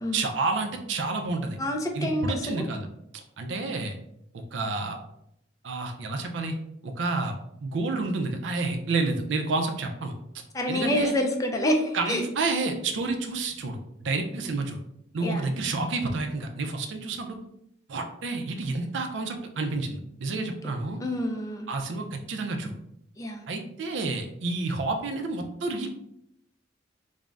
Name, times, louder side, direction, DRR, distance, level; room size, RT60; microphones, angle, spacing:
voice 1, 0.1-1.6 1.9-2.9 3.1-4.0 4.5-5.0 5.6-6.5 6.8-10.1 10.7-11.1 11.9-14.8 15.1-17.4 17.9-21.0 21.7-22.8 23.5-25.9, right 3 dB, 70° right, 5 dB, 0.4 m, -29 dB
voice 2, 1.6-2.6 10.5-12.2 15.2-15.5 20.3-20.5 21.0-21.7 23.2-23.5, left 1 dB, 20° left, 3 dB, 0.3 m, -28 dB
2.4 x 2.0 x 3.3 m, 0.77 s
head